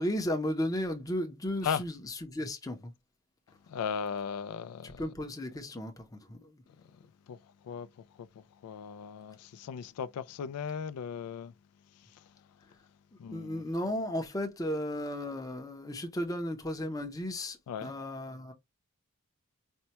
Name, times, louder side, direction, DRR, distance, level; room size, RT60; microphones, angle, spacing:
voice 1, 0.0-2.9 4.8-6.6 13.3-18.5, left 1 dB, 15° left, 0.6 m, -35 dB
voice 2, 3.7-5.0 7.3-7.4 7.6-7.9 8.2-8.3 8.6-11.5 13.2-13.6 17.7-17.9, left 7 dB, 85° left, 0.3 m, -36 dB
4.3 x 2.2 x 2.8 m
head